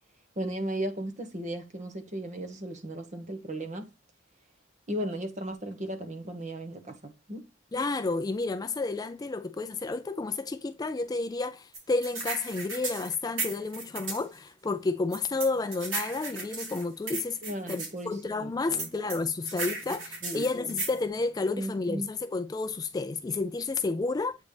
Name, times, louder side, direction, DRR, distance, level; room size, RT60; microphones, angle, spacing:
voice 1, 0.4-3.9 4.9-7.5 17.4-18.9 20.2-20.7 21.5-22.1, right 1 dB, 40° right, 1.3 m, -36 dB
voice 2, 7.7-17.4 17.7-24.4, left 3 dB, 20° left, 0.3 m, -31 dB
sound 1, 11.7-14.2 15.1-17.9 18.8-21.0, right 3 dB, 70° right, 3.2 m, -35 dB
8.3 x 4.0 x 3.3 m
head